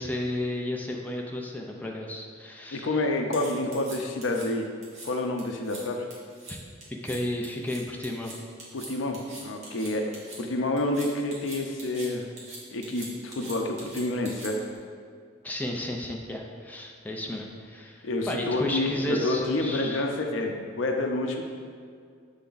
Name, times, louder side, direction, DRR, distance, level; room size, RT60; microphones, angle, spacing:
voice 1, 0.0-3.0 6.5-6.6 7.0-8.4 15.4-20.0, left 1 dB, 10° left, 0 dB, 0.5 m, -33 dB
voice 2, 2.7-4.6 5.0-6.0 8.7-12.3 12.7-14.7 18.0-21.4, left 2 dB, 75° left, 3 dB, 0.6 m, -28 dB
sound 1, 3.3-4.4 4.8-5.1 5.4-5.8 6.1-6.5 6.8-7.2 7.4-10.4 10.8-12.1 12.4-14.8, right 2 dB, 40° right, 1.4 m, -43 dB
7.1 x 3.4 x 3.9 m, 2.2 s
head